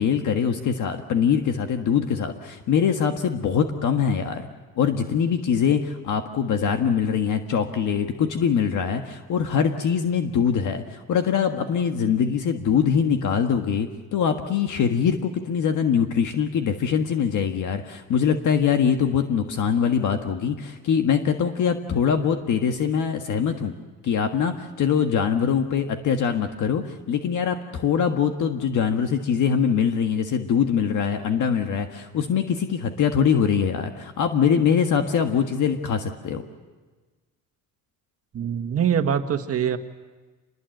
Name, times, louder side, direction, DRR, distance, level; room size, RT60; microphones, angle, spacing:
voice 1, 0.0-4.5 4.8-23.7 24.0-36.5, left 7 dB, 60° left, 5 dB, 1.6 m, -23 dB
voice 2, 38.3-39.8, right 8 dB, 40° right, 8 dB, 1.6 m, -23 dB
27.5 x 21.0 x 7.9 m, 1.3 s
cardioid pair, 130°, 35 cm